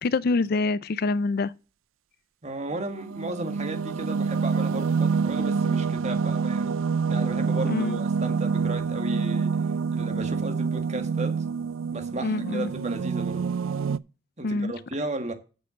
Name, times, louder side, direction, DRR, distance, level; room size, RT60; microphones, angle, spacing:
voice 1, 0.0-1.5 7.7-8.0 12.2-12.7 14.4-14.7, left 3 dB, 50° left, 0.4 m, -25 dB
voice 2, 2.4-6.7 7.1-9.6 9.9-11.4 11.9-13.5 14.4-15.3, right 2 dB, 35° right, 1.7 m, -34 dB
sound 1, 2.7-14.0, right 5 dB, 85° right, 0.4 m, -27 dB
7.8 x 6.7 x 6.3 m
head